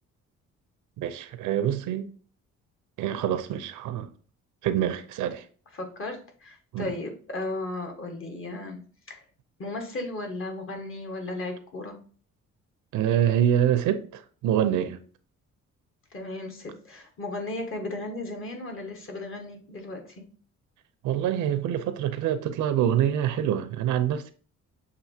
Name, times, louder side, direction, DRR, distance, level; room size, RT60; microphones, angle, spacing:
voice 1, 1.0-2.1 3.0-4.1 4.6-5.5 6.7-6.9 12.9-15.0 21.0-24.3, right 10 dB, 85° right, 0.6 m, -25 dB
voice 2, 5.7-8.8 9.1-9.2 9.6-12.0 16.1-20.3, left 2 dB, 45° left, 1.4 m, -35 dB
6.8 x 2.7 x 2.7 m
cardioid pair, 90°, 30 cm